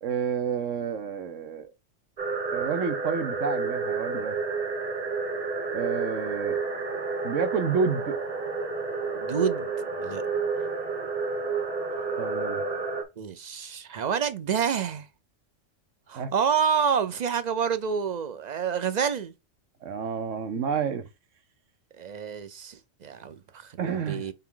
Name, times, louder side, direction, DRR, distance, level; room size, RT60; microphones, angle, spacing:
voice 1, 0.0-1.7 2.5-4.4 5.7-6.6 7.2-8.2 12.2-12.7 16.1-16.3 19.8-21.1 23.8-24.3, right 6 dB, 85° right, 1.3 m, -30 dB
sound 1, 2.2-13.0, right 4 dB, 30° right, 1.3 m, -30 dB
voice 2, 9.1-9.7 10.0-10.2 13.2-15.1 16.1-19.3 21.9-24.3, right 7 dB, 50° right, 0.6 m, -28 dB
5.5 x 4.5 x 3.8 m
omnidirectional pair, 1.3 m